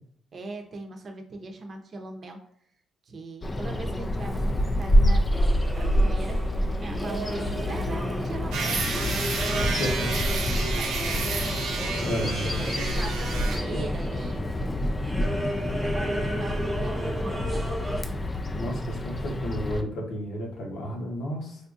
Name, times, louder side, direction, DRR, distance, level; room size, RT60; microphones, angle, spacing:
voice 1, 0.3-2.4 3.1-5.3 5.8-9.2 9.5-9.7 10.6-12.0 12.4-14.9 15.8-17.7, right 3 dB, 45° right, 3 dB, 0.7 m, -40 dB
Bird vocalization bird call bird song, 3.4-19.8, left 1 dB, 25° left, 0.4 m, -27 dB
sound 1, 5.3-18.0, right 1 dB, 10° right, 1.1 m, -35 dB
sound 2, 8.5-13.6, right 4 dB, 90° right, 0.7 m, -31 dB
voice 2, 9.6-10.1 11.1-11.2 12.0-12.5 13.7-13.8 18.5-21.6, equal, 75° left, 0 dB, 1.0 m, -32 dB
3.5 x 2.6 x 2.5 m, 0.65 s
cardioid pair, 90°, 0 cm